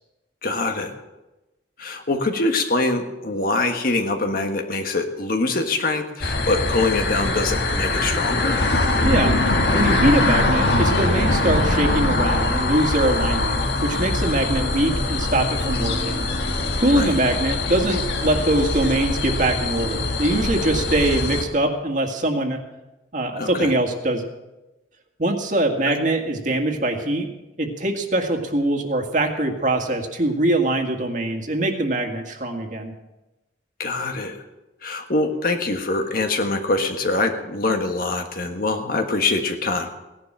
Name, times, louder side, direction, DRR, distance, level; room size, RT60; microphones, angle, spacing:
voice 1, 0.4-0.9 1.8-8.6 16.9-17.2 23.4-23.7 25.8-26.0 33.8-34.4 34.8-39.9, left 2 dB, 55° left, 5 dB, 1.6 m, -24 dB
sound 1, 6.2-21.4, left 2 dB, 75° left, 1.9 m, -22 dB
voice 2, 9.0-9.3 9.7-16.3 16.7-22.6 23.1-24.2 25.2-27.3 27.6-32.9, right 1 dB, 45° right, 4 dB, 1.9 m, -22 dB
17.0 x 11.0 x 6.2 m, 1.0 s
head